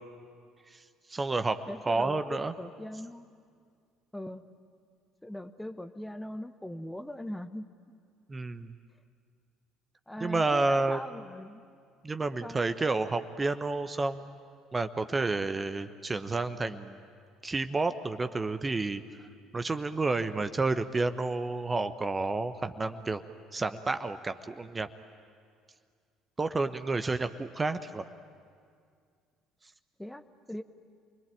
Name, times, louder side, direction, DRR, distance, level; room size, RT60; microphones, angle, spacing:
voice 1, 1.1-2.5 8.3-8.7 10.2-11.0 12.0-14.3 14.7-17.0 17.4-19.0 19.5-23.2 23.5-24.9 26.4-28.1, right 3 dB, 20° right, 10 dB, 1.0 m, -30 dB
voice 2, 1.7-3.3 4.1-4.4 5.2-7.7 10.1-11.6 12.4-12.6 30.0-30.6, left 1 dB, 5° left, 11 dB, 1.0 m, -40 dB
28.5 x 22.0 x 9.2 m, 2.2 s
figure-of-eight pair, 55°, 0 cm